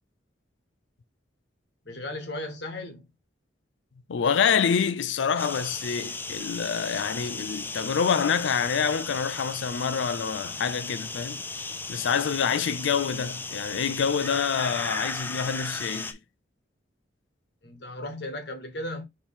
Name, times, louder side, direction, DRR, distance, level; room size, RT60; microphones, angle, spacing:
voice 1, 1.8-3.1 17.6-19.0, left 1 dB, 60° left, 1.1 m, -36 dB
voice 2, 4.1-11.4 11.9-16.2, left 6 dB, 75° left, 0.4 m, -27 dB
sound 1, 5.4-16.1, left 3 dB, 10° left, 0.3 m, -35 dB
4.4 x 2.9 x 3.4 m
head